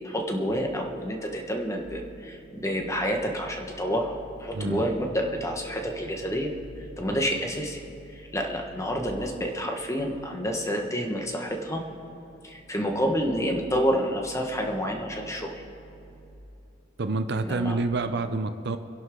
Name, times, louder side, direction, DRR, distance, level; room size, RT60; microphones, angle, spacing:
voice 1, 0.0-11.8 12.4-15.6 17.4-17.8, equal, 15° left, 2 dB, 1.4 m, -29 dB
voice 2, 4.5-4.9 17.0-18.8, right 3 dB, 60° right, 9 dB, 0.7 m, -28 dB
26.5 x 11.0 x 3.8 m, 2.8 s
head